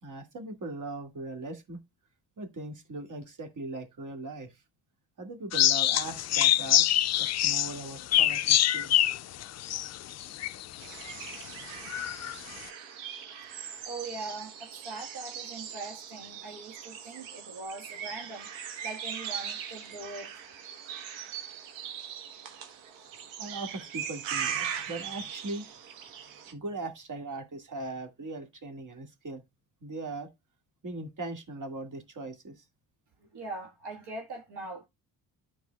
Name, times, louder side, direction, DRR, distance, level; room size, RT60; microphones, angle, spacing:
voice 1, 0.0-1.8 2.4-4.6 5.2-6.8 7.2-9.1 23.4-25.7 26.5-29.4 29.8-30.3 30.8-32.6, right 2 dB, 40° right, 2.1 m, -39 dB
sound 1, 5.5-10.7 11.2-11.3 11.9-12.3, left 13 dB, 40° left, 0.4 m, -25 dB
sound 2, 10.8-26.5, right 8 dB, 80° right, 1.3 m, -40 dB
voice 2, 13.6-18.5 18.8-20.3 33.2-34.9, right 3 dB, 60° right, 1.6 m, -41 dB
13.0 x 4.4 x 2.3 m
supercardioid pair, 60°, 45 cm